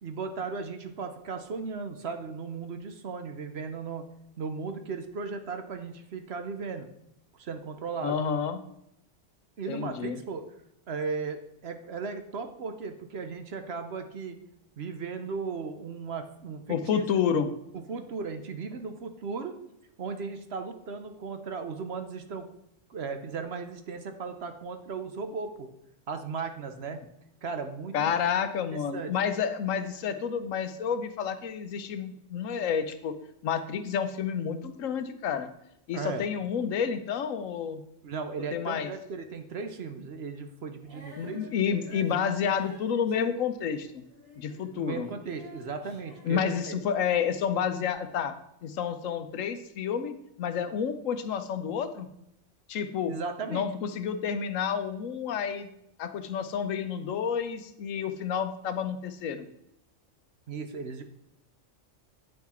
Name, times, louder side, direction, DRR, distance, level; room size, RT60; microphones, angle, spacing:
voice 1, 0.0-4.0 4.4-6.9 7.3-8.2 9.6-10.5 10.9-14.4 14.8-17.0 17.7-19.5 20.0-22.5 22.9-25.7 26.1-27.0 27.4-28.1 28.9-29.1 35.9-36.3 38.0-41.4 44.7-46.8 53.0-53.7 60.5-61.0, right 5 dB, 60° right, 7 dB, 1.0 m, -36 dB
voice 2, 8.0-8.6 9.7-10.2 16.7-17.5 27.9-33.1 33.4-35.5 35.9-37.8 38.5-38.9 41.2-44.0 44.4-45.1 46.2-48.3 48.6-52.1 52.7-53.1 53.5-55.7 56.0-59.5, left 7 dB, 85° left, 10 dB, 1.1 m, -30 dB
Female singing, 40.8-47.2 47.9-48.0, right 1 dB, 85° right, 3.4 m, -50 dB
9.0 x 6.0 x 4.3 m, 0.78 s
omnidirectional pair, 1.3 m